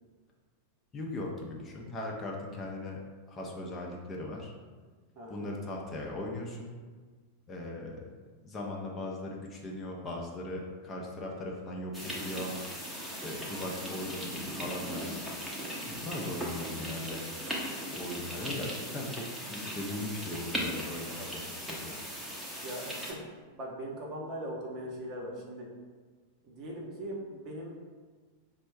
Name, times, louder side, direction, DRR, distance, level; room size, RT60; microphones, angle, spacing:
voice 1, 0.9-3.0 3.3-4.5 5.3-6.7 7.5-8.1 8.4-12.6 13.1-15.2 15.9-17.3 17.9-21.4 21.7-22.0, left 1 dB, 20° left, -1 dB, 0.7 m, -39 dB
sound 1, 11.9-23.1, equal, 5° right, 0.9 m, -38 dB
voice 2, 22.6-23.2 23.6-25.7 26.4-27.8, right 1 dB, 35° right, -1 dB, 0.9 m, -40 dB
4.2 x 2.1 x 4.6 m, 1.4 s
figure-of-eight pair, 90°, 0 cm